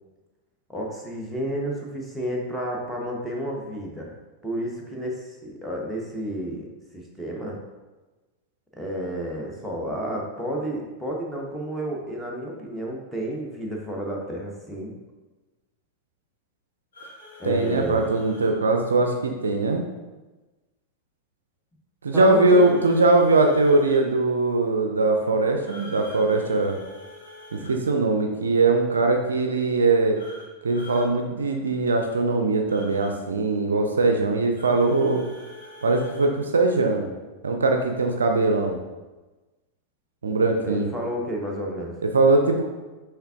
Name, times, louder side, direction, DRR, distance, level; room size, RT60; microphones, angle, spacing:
voice 1, 0.7-4.1 4.4-6.7 6.9-7.6 8.7-14.9 17.4-18.1 22.1-22.8 40.6-41.9, equal, ahead, -2 dB, 0.8 m, -31 dB
sound 1, 16.9-18.5 22.5-24.0 25.6-27.7 30.1-31.1 32.7-33.1 34.5-36.3, left 1 dB, 70° left, 1.0 m, -45 dB
voice 2, 17.4-19.9 22.0-26.8 27.5-30.2 30.6-35.2 35.8-37.1 37.4-38.8 40.2-40.9 42.0-42.6, right 3 dB, 70° right, 4 dB, 0.4 m, -21 dB
5.5 x 3.4 x 2.3 m, 1.2 s
figure-of-eight pair, 90°, 0 cm